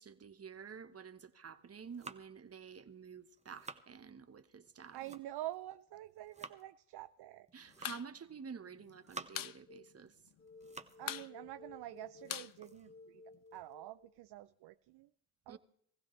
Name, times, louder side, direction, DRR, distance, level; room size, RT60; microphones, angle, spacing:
voice 1, 0.0-5.0 7.5-10.1 15.5-15.6, right 6 dB, 30° right, 1.1 m, -50 dB
sound 1, 1.6-2.5 3.2-3.9 4.7-5.5 6.0-6.7 7.5-8.2 8.7-9.6 10.1-11.1 11.4-11.5 12.0-13.7, right 3 dB, 15° right, 1.2 m, -53 dB
voice 2, 4.9-7.5 11.0-13.2 13.5-15.1 15.5-15.6, right 14 dB, 60° right, 0.6 m, -47 dB
sound 2, 7.7-8.1 8.3-8.4 8.7-9.6 9.9-10.0 10.3-10.7 11.0-13.4, left 11 dB, 45° left, 0.7 m, -43 dB
sound 3, 9.7-10.0 10.4-14.2, left 2 dB, 30° left, 1.7 m, -57 dB
20.5 x 15.0 x 3.2 m
supercardioid pair, 70°, 46 cm